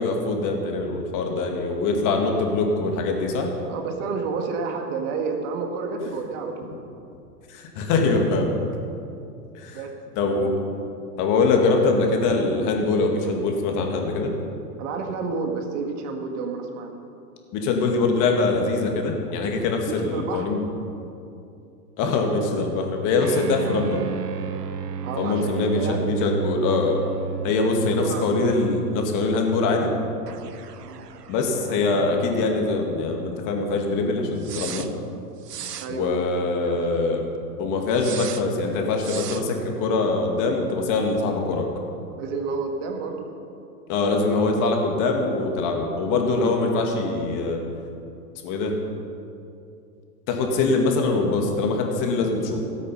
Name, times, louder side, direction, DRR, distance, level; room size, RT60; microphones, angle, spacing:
voice 1, 0.0-3.5 7.5-8.5 9.5-9.8 10.2-10.5 11.2-14.3 17.5-20.6 22.0-24.0 25.2-27.0 27.4-29.9 31.3-34.9 35.9-37.2 37.6-41.7 43.9-47.6 48.4-48.7 50.3-52.6, left 3 dB, 40° left, 2 dB, 2.3 m, -23 dB
voice 2, 3.7-6.7 9.7-9.9 10.2-10.5 14.8-16.9 19.9-20.5 25.0-26.1 27.4-28.2 30.8-31.1 35.8-36.4 36.6-36.8 42.2-43.3, right 4 dB, 50° right, 3 dB, 2.0 m, -30 dB
sound 1, 23.2-32.4 32.6-32.7 34.4-34.9 35.4-35.9 37.9-38.4 39.0-39.4, right 7 dB, 85° right, 0.9 m, -33 dB
16.5 x 8.7 x 5.7 m, 2.6 s
hypercardioid pair, 105°, 47 cm